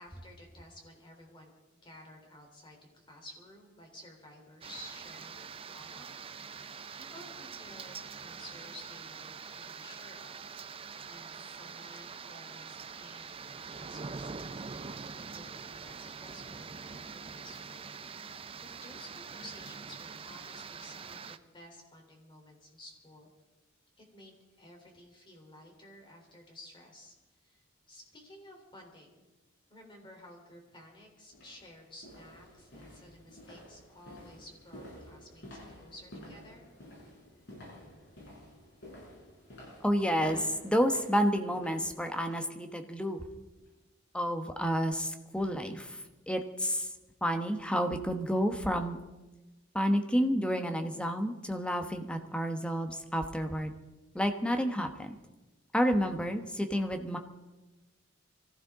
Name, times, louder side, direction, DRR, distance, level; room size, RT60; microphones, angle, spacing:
voice 1, 0.0-1.5 1.8-10.4 10.7-23.3 24.0-29.2 29.7-35.5 35.8-36.7, left 1 dB, 25° left, 1 dB, 3.6 m, -53 dB
sound 1, 4.6-21.4, right 5 dB, 30° right, 0.5 m, -44 dB
sound 2, 30.7-30.8 31.3-42.5 42.9-43.1 43.6-43.7, left 1 dB, 60° left, 7.3 m, -51 dB
voice 2, 39.8-43.3 44.1-46.0 46.3-46.9 47.2-49.0 49.7-53.7 54.1-55.2 55.7-57.2, equal, 5° left, 6 dB, 1.1 m, -30 dB
24.5 x 15.5 x 3.7 m, 1.1 s
head